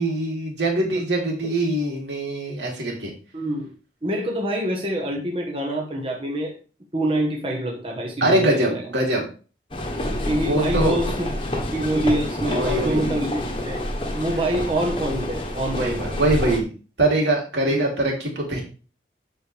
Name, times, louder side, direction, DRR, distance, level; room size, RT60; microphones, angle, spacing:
voice 1, 0.0-3.1 8.2-9.2 10.4-11.0 12.4-13.1 15.7-16.7 17.0-18.6, right 1 dB, 85° right, -2 dB, 3.3 m, -23 dB
voice 2, 3.3-3.7 4.0-6.5 6.9-8.8 10.3-11.3 11.7-13.8 14.1-16.0 17.7-17.8, right 1 dB, 30° right, -1 dB, 1.3 m, -26 dB
sound 1, 9.7-16.6, left 1 dB, 30° left, 1.2 m, -28 dB
12.5 x 4.6 x 3.4 m, 0.36 s
head